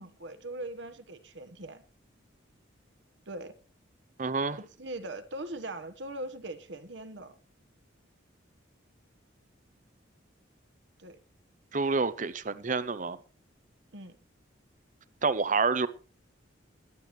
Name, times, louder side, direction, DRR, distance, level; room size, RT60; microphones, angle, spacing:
voice 1, 0.0-1.8 3.3-3.6 4.6-7.3 11.0-11.2 13.9-14.2, right 1 dB, 65° right, 1.3 m, -40 dB
voice 2, 4.2-4.6 11.7-13.2 15.2-15.9, right 4 dB, 40° right, 0.6 m, -28 dB
21.0 x 9.3 x 3.2 m
head